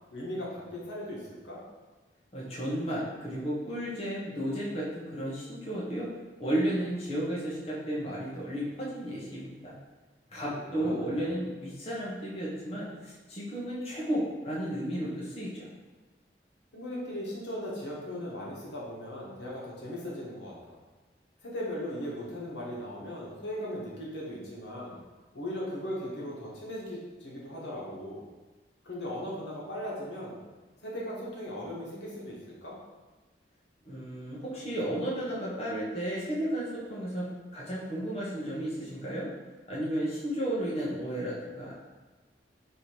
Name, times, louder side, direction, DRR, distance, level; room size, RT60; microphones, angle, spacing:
voice 1, 0.1-1.6 10.4-11.3 16.7-20.8 21.4-25.0 25.3-28.2 28.8-30.4 30.8-32.8, equal, 75° left, -5 dB, 1.1 m, -38 dB
voice 2, 2.3-6.1 6.4-9.7 10.3-15.7 33.9-37.3 37.5-39.3 39.7-41.7, right 1 dB, 35° left, -7 dB, 0.8 m, -33 dB
3.4 x 2.7 x 4.4 m, 1.3 s
head